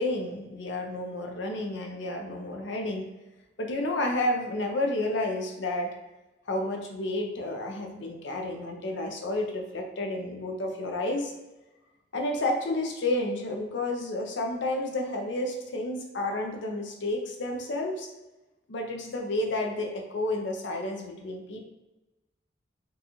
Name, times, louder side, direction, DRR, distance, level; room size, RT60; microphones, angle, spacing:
voice 1, 0.0-3.1 3.6-5.9 6.5-11.3 12.1-18.1 18.7-21.7, left 1 dB, 75° left, 2 dB, 0.6 m, -31 dB
3.9 x 2.4 x 2.9 m, 1.1 s
head